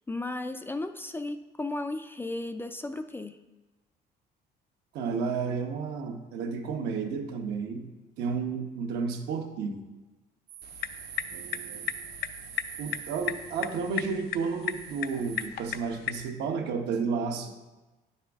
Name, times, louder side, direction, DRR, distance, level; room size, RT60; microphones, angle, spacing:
voice 1, 0.1-3.4, left 2 dB, 15° left, 9 dB, 0.3 m, -35 dB
voice 2, 4.9-7.9 8.2-9.8 11.3-11.9 12.8-17.5, right 5 dB, 80° right, 3 dB, 1.1 m, -32 dB
sound 1, 10.5-15.5, right 11 dB, 55° right, 0.5 m, -45 dB
sound 2, 10.6-16.3, left 10 dB, 70° left, 0.5 m, -36 dB
9.6 x 5.6 x 3.5 m, 1.1 s
cardioid pair, 110°, 17 cm